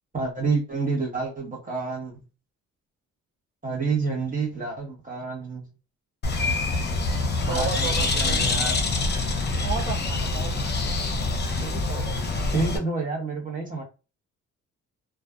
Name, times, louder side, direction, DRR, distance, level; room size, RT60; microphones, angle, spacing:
voice 1, 0.1-2.2 3.6-5.7 7.4-8.8 12.5-13.8, right 4 dB, 25° right, -1 dB, 1.0 m, -29 dB
Bird, 6.2-12.8, left 3 dB, 35° left, 0.7 m, -25 dB
voice 2, 7.5-8.6 9.6-10.6 11.6-12.8, right 7 dB, 85° right, -4 dB, 0.7 m, -35 dB
2.5 x 2.3 x 2.3 m, 0.31 s
cardioid pair, 90°, 30 cm